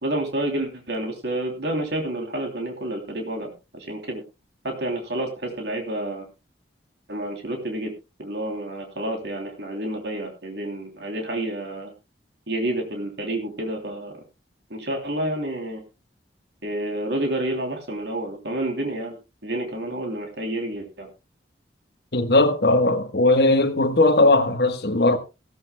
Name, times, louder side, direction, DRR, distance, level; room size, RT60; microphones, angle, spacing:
voice 1, 0.0-4.2 4.6-6.3 7.1-7.9 8.2-11.9 12.5-14.1 14.7-15.8 16.6-19.2 19.4-21.1, right 1 dB, 70° right, 3.1 m, -29 dB
voice 2, 22.1-25.2, left 2 dB, 60° left, 1.3 m, -18 dB
16.0 x 14.0 x 2.3 m
head